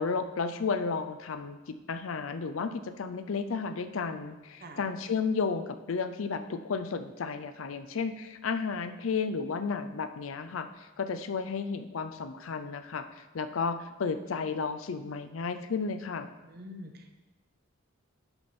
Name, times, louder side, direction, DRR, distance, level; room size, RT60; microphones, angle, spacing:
voice 1, 0.0-16.3, left 5 dB, 75° left, 10 dB, 0.5 m, -33 dB
voice 2, 16.4-17.2, left 1 dB, 50° right, 5 dB, 0.8 m, -45 dB
7.8 x 4.3 x 6.0 m, 1.1 s
head